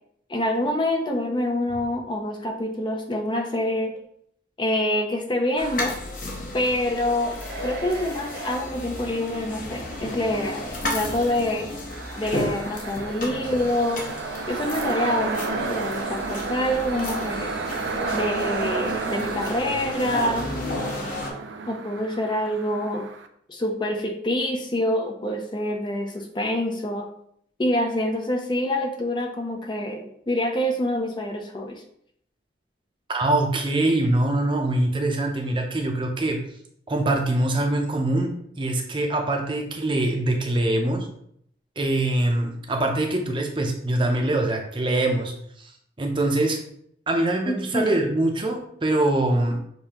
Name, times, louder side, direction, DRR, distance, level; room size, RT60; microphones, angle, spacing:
voice 1, 0.3-4.0 4.6-6.0 6.5-10.7 10.9-11.7 12.2-14.1 14.5-17.6 18.1-20.5 21.7-23.1 23.5-27.1 27.6-31.8 47.5-48.0, left 1 dB, 25° left, 3 dB, 0.4 m, -26 dB
sound 1, 5.6-21.3, left 1 dB, 45° left, 0.9 m, -33 dB
sound 2, 7.0-11.7 12.6-16.8 17.1-17.2 17.9-19.4, right 2 dB, 55° right, 0.9 m, -38 dB
sound 3, 11.9-23.3, right 4 dB, 75° right, 0.4 m, -32 dB
voice 2, 33.1-36.4 36.9-38.3 38.6-41.1 41.8-45.7 46.0-46.6 47.1-49.6, right 1 dB, 25° right, 2 dB, 0.6 m, -23 dB
6.7 x 2.7 x 2.9 m, 0.69 s
head